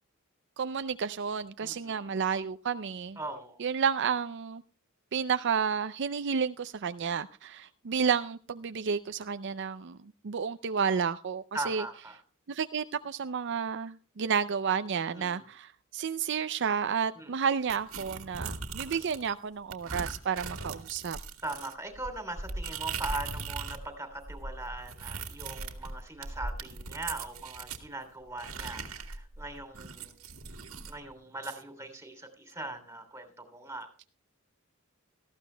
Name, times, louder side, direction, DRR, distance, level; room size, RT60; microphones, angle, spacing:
voice 1, 0.6-3.2 3.6-4.6 5.1-10.0 10.2-11.8 12.5-21.2, right 6 dB, 55° right, 11 dB, 0.5 m, -31 dB
voice 2, 1.6-2.0 3.2-3.6 11.5-12.2 15.1-15.5 17.1-17.3 18.8-19.1 21.4-30.2 30.9-33.9, right 2 dB, 15° right, 6 dB, 3.1 m, -40 dB
sound 1, 17.7-19.3 19.7-23.9 24.1-27.8 28.4-31.0, right 4 dB, 75° right, 1.9 m, -39 dB
18.5 x 14.5 x 2.2 m, 0.38 s
head